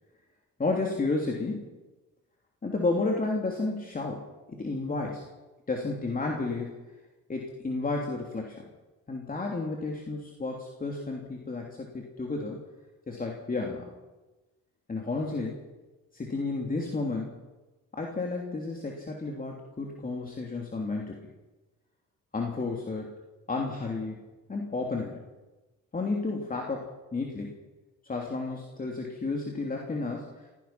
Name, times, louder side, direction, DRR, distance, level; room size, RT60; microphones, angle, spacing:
voice 1, 0.6-1.7 2.6-5.2 5.7-6.7 7.3-8.6 9.1-12.6 13.1-13.9 14.9-15.6 16.1-17.3 17.9-21.3 22.3-23.2 23.5-24.2 24.5-25.2 25.9-27.6 28.0-30.4, left 3 dB, 30° left, 0 dB, 3.2 m, -32 dB
28.0 x 16.0 x 6.0 m, 1.1 s
cardioid pair, 90°, 30 cm